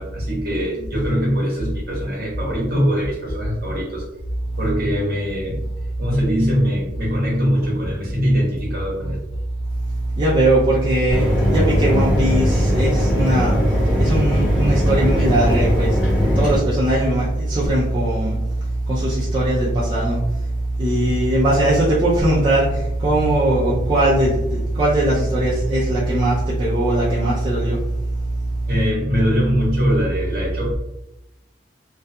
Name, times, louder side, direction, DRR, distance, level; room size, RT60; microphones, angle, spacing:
voice 1, 0.0-4.0 4.6-5.6 6.0-9.2 28.7-30.7, equal, 50° right, -4 dB, 0.9 m, -22 dB
voice 2, 10.2-13.5 14.0-15.9 16.4-18.4 18.9-20.2 20.8-22.7 23.0-27.8, right 1 dB, 25° right, -7 dB, 0.4 m, -19 dB
Mechanisms, 11.1-16.6, equal, 5° right, 1.0 m, -19 dB
2.3 x 2.3 x 2.7 m, 0.90 s
head